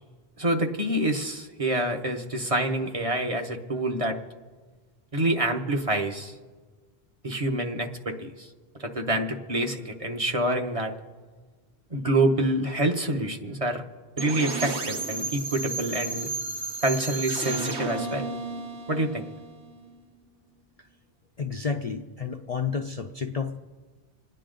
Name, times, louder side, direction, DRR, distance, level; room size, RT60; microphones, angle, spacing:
voice 1, 0.4-4.2 5.1-6.3 7.2-8.5 8.8-10.9 11.9-13.8 14.2-16.3 16.8-18.3 18.9-19.2, right 1 dB, 35° right, 2 dB, 1.0 m, -27 dB
sound 1, 14.2-20.0, right 3 dB, 85° right, 1.4 m, -33 dB
voice 2, 21.4-23.6, left 5 dB, 45° left, 4 dB, 0.5 m, -30 dB
27.5 x 9.9 x 3.8 m, 1.4 s
omnidirectional pair, 1.1 m